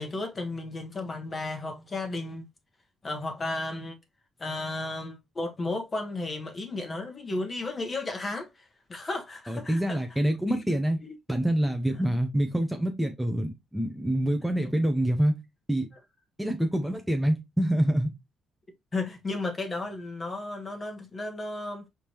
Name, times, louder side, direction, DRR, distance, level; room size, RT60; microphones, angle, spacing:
voice 1, 0.0-2.5 3.0-4.0 4.4-10.0 10.5-10.6 11.1-11.2 18.9-21.9, left 2 dB, 30° left, 1.4 m, -34 dB
voice 2, 9.5-11.0 11.3-15.3 15.7-15.9 16.4-18.1, right 1 dB, 5° right, 0.7 m, -26 dB
4.9 x 3.5 x 2.9 m
cardioid pair, 90°, 0 cm